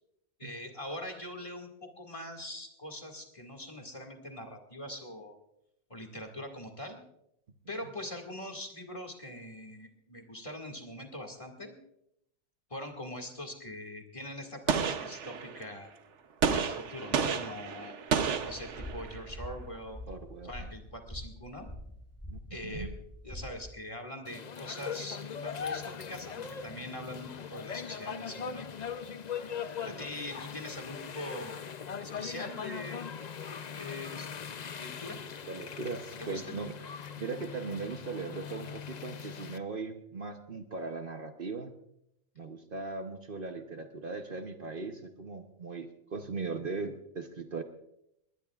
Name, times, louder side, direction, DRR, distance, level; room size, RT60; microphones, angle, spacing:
voice 1, 0.4-5.4 5.9-7.0 7.7-11.8 12.7-15.9 16.5-18.0 18.4-20.0 20.4-21.7 22.5-22.9 23.2-28.7 29.8-31.6 32.0-33.1 33.8-34.3 34.7-35.2 36.2-36.6, left 1 dB, 25° left, 1 dB, 2.1 m, -42 dB
Gunshot gunfire, 14.7-15.7 16.4-19.2, right 6 dB, 75° right, 1.2 m, -31 dB
sound 1, 18.3-23.7, left 1 dB, 10° left, 6.6 m, -45 dB
voice 2, 20.1-20.7 22.3-22.9 35.5-36.7 37.2-41.7 42.4-47.6, right 4 dB, 50° right, 6 dB, 1.0 m, -39 dB
sound 2, 24.2-39.6, left 7 dB, 45° left, 0.6 m, -40 dB
21.0 x 20.0 x 2.4 m, 0.78 s
omnidirectional pair, 1.2 m